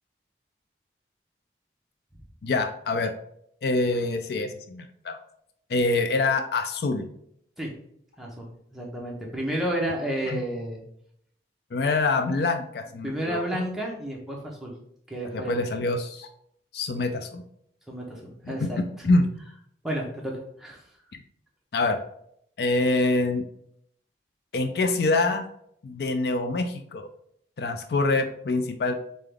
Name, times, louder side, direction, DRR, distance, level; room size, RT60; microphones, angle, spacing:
voice 1, 2.4-3.1 3.6-5.2 5.7-7.0 10.3-10.4 11.7-13.6 15.3-16.3 16.7-17.4 18.4-19.3 21.7-22.0 22.6-23.4 24.5-25.5 25.8-27.1 27.6-28.9, left 3 dB, 60° left, 7 dB, 0.4 m, -25 dB
voice 2, 8.2-10.8 13.0-14.7 15.1-15.7 17.9-19.1 19.8-20.8, right 1 dB, ahead, -2 dB, 0.9 m, -31 dB
3.8 x 3.7 x 3.4 m, 0.69 s
head